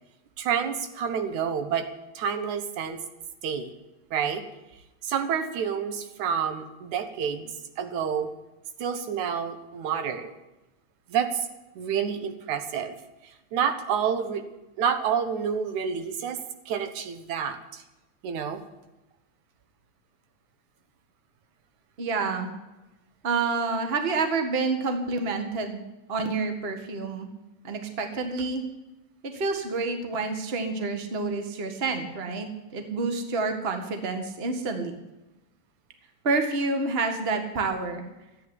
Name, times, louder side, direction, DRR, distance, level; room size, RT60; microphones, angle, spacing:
voice 1, 0.4-1.9 2.2-3.0 3.4-3.7 4.1-4.4 5.0-8.3 8.8-10.3 11.1-11.5 11.8-12.9 13.5-14.4 14.8-16.4 16.7-17.8 18.2-18.6, right 7 dB, 80° right, 8 dB, 2.7 m, -28 dB
voice 2, 22.0-22.5 23.2-25.8 26.1-27.3 27.6-28.6 29.2-35.0 36.2-38.0, right 3 dB, 25° right, 5 dB, 1.4 m, -28 dB
13.5 x 9.3 x 9.7 m, 1.0 s
omnidirectional pair, 3.3 m